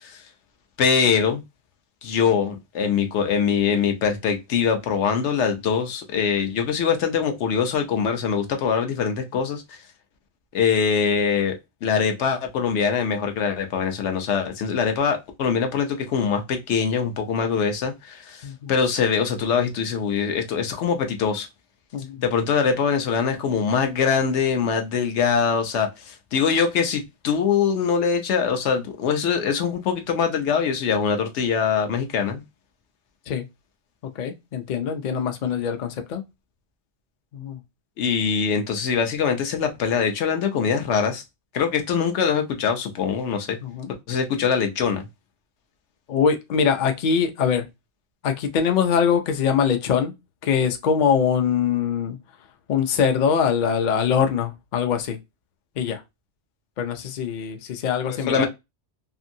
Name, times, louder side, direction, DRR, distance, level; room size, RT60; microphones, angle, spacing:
voice 1, 0.8-1.4 2.0-9.8 10.5-11.5 11.8-21.5 22.2-32.4 38.0-41.2 41.5-43.6 44.1-45.0 58.1-58.5, left 6 dB, 80° left, 0.9 m, -23 dB
voice 2, 34.2-36.2 37.3-37.6 43.6-43.9 46.1-47.7 48.2-50.1 50.4-52.2 52.7-55.2 55.8-56.0 56.8-58.5, left 7 dB, 55° left, 0.5 m, -23 dB
2.7 x 2.5 x 2.6 m
omnidirectional pair, 1.2 m